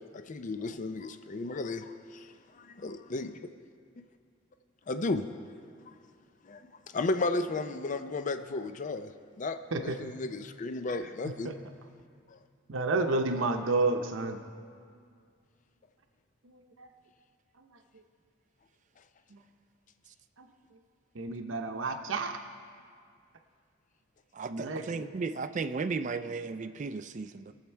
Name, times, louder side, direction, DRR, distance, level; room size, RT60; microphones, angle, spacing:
voice 1, 0.0-3.5 4.0-4.1 4.9-5.2 6.4-11.5 12.3-12.4, left 3 dB, 40° left, 0.4 m, -34 dB
voice 2, 9.7-10.1 11.2-11.5 12.7-14.4 16.4-16.9 20.4-20.5 21.2-22.4 24.5-25.0, right 3 dB, 75° right, 0.7 m, -31 dB
voice 3, 24.3-27.5, right 4 dB, 40° right, 0.3 m, -35 dB
21.5 x 7.3 x 4.5 m
head